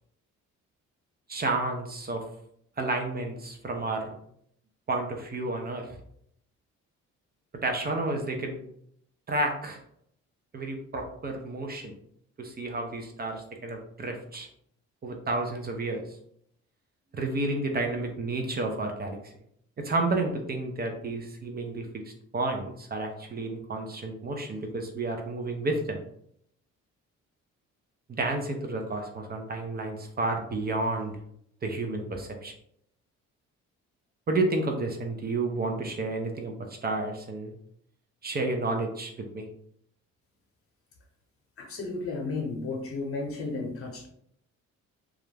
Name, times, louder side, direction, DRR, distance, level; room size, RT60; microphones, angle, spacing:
voice 1, 1.3-2.2 2.8-4.1 4.9-5.9 7.6-8.6 9.3-9.8 10.5-11.9 12.4-14.5 15.0-16.0 17.1-19.3 19.8-21.9 22.3-26.0 28.1-31.1 31.6-32.5 34.3-36.6 36.8-37.5 38.2-39.5, right 2 dB, 30° right, 3 dB, 0.4 m, -31 dB
voice 2, 41.6-44.1, left 3 dB, 50° left, 2 dB, 0.8 m, -33 dB
2.3 x 2.0 x 3.2 m, 0.70 s
cardioid pair, 90°, 30 cm